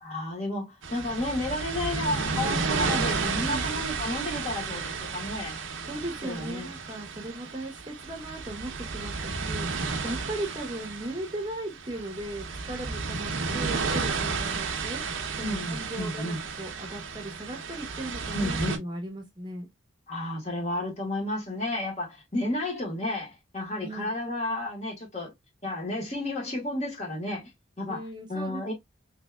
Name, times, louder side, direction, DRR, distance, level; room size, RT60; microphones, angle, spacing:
voice 1, 0.0-5.5 6.2-6.7 15.4-16.4 18.3-18.8 20.1-25.3 25.6-27.5 27.8-28.0 28.3-28.7, left 1 dB, 35° left, 1.5 m, -32 dB
sound 1, 0.8-18.8, right 4 dB, 85° right, 0.7 m, -32 dB
voice 2, 5.9-9.7 10.0-15.0 15.4-19.7 23.8-24.1 27.9-28.7, right 1 dB, 25° right, 0.9 m, -37 dB
3.3 x 3.3 x 2.2 m
head